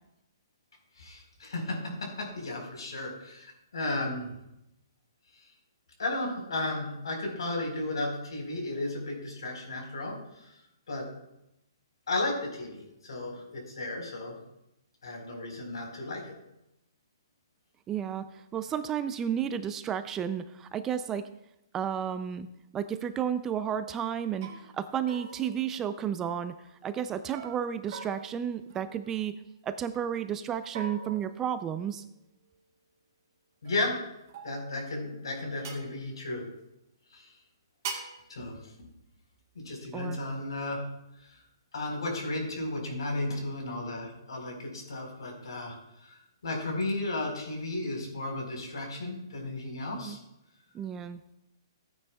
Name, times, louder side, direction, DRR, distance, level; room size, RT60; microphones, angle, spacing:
voice 1, 1.0-4.3 6.0-10.6 10.9-11.1 12.1-14.3 15.0-16.3 33.6-34.0 34.4-36.4 37.1-37.3 38.3-38.5 39.5-40.8 41.2-41.4 41.7-46.2 46.4-50.2, left 2 dB, 80° left, 2 dB, 4.3 m, -34 dB
voice 2, 17.9-21.2 21.7-22.5 22.7-26.5 26.8-29.4 29.6-32.0 39.9-40.2 50.0-50.2 50.7-51.2, right 8 dB, 15° right, 11 dB, 0.4 m, -32 dB
sound 1, 23.7-24.0 24.4-24.6 25.1-26.4 27.3-29.5 30.7-32.2 33.7-34.9 35.6-35.9 37.8-38.2, right 5 dB, 40° right, 2.0 m, -43 dB
16.0 x 9.5 x 2.3 m, 0.85 s
hypercardioid pair, 160°, 3 cm